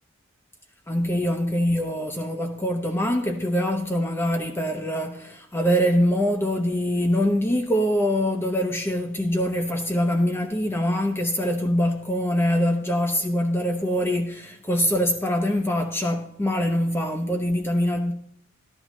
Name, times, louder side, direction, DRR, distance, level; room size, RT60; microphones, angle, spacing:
voice 1, 0.9-18.1, equal, 10° left, 0.6 m, -24 dB
14.5 x 11.0 x 3.0 m
head